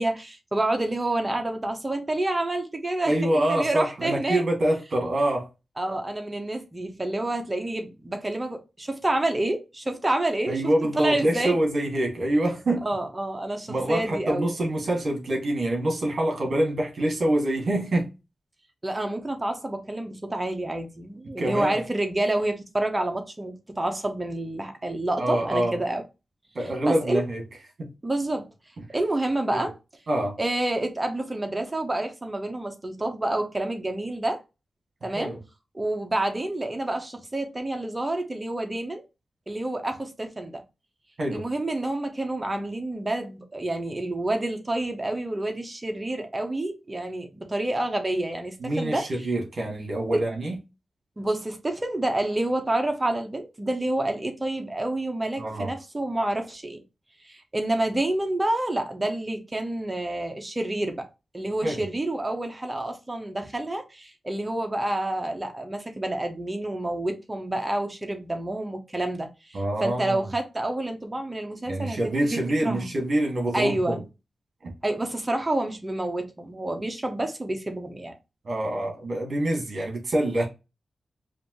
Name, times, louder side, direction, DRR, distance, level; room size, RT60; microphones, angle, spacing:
voice 1, 0.0-4.4 5.8-10.6 10.9-11.6 12.8-14.4 18.8-26.0 26.8-27.2 28.0-28.5 28.9-29.7 30.4-34.4 35.0-35.3 35.7-39.0 39.5-40.6 41.3-49.0 50.1-50.2 51.2-56.8 57.2-61.1 61.3-72.9 73.5-74.0 74.8-78.1, right 1 dB, 20° right, 1.0 m, -28 dB
voice 2, 3.1-5.5 10.5-12.9 13.7-18.1 21.4-21.8 25.2-25.8 26.5-27.4 27.8-27.9 30.1-30.4 35.2-35.4 41.2-41.4 48.6-50.6 55.4-55.7 61.6-61.8 69.5-70.2 71.7-74.0 74.6-74.7 78.4-80.5, right 1 dB, 55° right, 1.9 m, -25 dB
5.1 x 2.7 x 3.0 m
wide cardioid pair, 90°, 0 cm